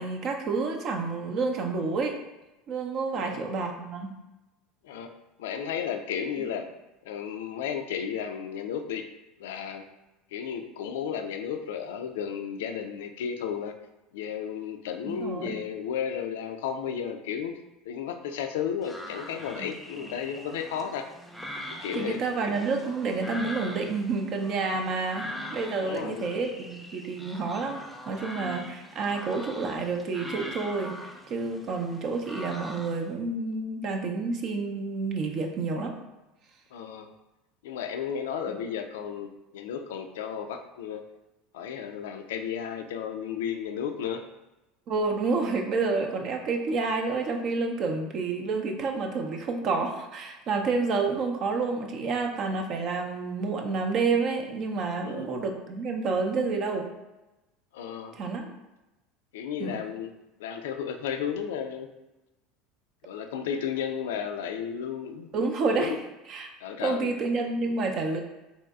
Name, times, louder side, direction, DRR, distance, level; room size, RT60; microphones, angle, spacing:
voice 1, 0.0-2.2 2.7-4.1 6.4-6.5 15.1-15.6 19.6-19.7 21.9-30.9 31.3-35.9 38.5-38.6 44.9-56.9 58.1-58.4 59.6-59.8 65.3-65.9 66.3-66.5 66.8-68.2, right 4 dB, 45° right, 3 dB, 0.6 m, -29 dB
voice 2, 3.1-3.5 4.8-5.1 5.4-6.7 7.0-9.0 9.4-9.8 10.3-13.8 14.1-17.5 17.9-21.0 21.7-22.2 25.8-26.3 36.7-37.1 37.6-41.0 41.5-44.2 55.0-55.3 57.7-58.2 59.3-60.1 60.4-61.9 63.0-65.3 65.7-66.0 66.6-67.2, left 8 dB, 70° left, 6 dB, 0.3 m, -33 dB
sound 1, 18.8-33.1, equal, 5° left, 0.5 m, -42 dB
4.1 x 2.9 x 2.3 m, 0.98 s
figure-of-eight pair, 75°, 0 cm